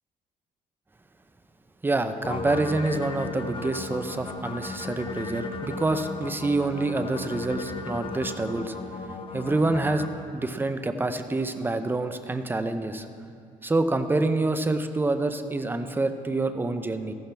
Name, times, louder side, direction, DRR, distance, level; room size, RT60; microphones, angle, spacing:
voice 1, 1.8-8.7 9.3-10.1 10.3-13.1 13.6-17.1, right 2 dB, 15° right, 8 dB, 0.7 m, -27 dB
sound 1, 2.2-10.1, left 3 dB, 35° left, 1.1 m, -35 dB
14.5 x 12.0 x 3.4 m, 2.4 s
cardioid pair, 105°, 15 cm